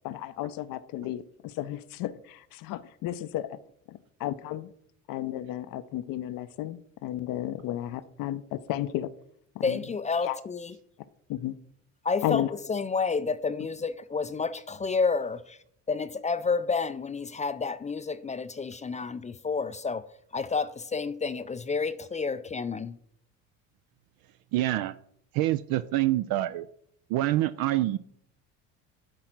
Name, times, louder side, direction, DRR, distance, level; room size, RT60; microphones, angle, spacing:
voice 1, 0.0-3.6 3.9-4.7 5.1-9.1 9.6-9.8 10.2-10.4 11.3-11.6 12.2-12.5, left 13 dB, 55° left, 0.6 m, -33 dB
voice 2, 9.6-10.7 12.0-12.4 12.7-15.6 15.9-20.1 20.3-23.0, left 4 dB, 20° left, 0.4 m, -30 dB
voice 3, 24.5-25.0 25.3-26.7 27.1-28.0, right 15 dB, 60° right, 0.5 m, -26 dB
8.8 x 3.9 x 5.9 m
hypercardioid pair, 70°, 39 cm